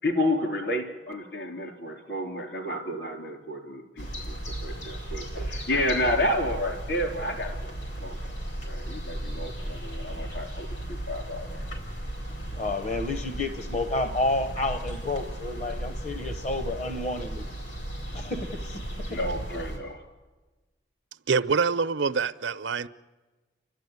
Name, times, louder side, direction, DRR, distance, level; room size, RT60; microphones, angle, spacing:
voice 1, 0.0-4.4 4.6-7.7 8.0-8.2 8.7-11.6 19.1-20.1, left 1 dB, 65° left, 3.7 m, -30 dB
sound 1, 4.0-19.8, right 1 dB, 80° left, 4.7 m, -35 dB
voice 2, 12.5-17.5 18.1-19.2, left 2 dB, 40° left, 0.8 m, -30 dB
voice 3, 21.3-22.9, right 5 dB, 85° right, 0.7 m, -25 dB
29.5 x 12.0 x 9.5 m
head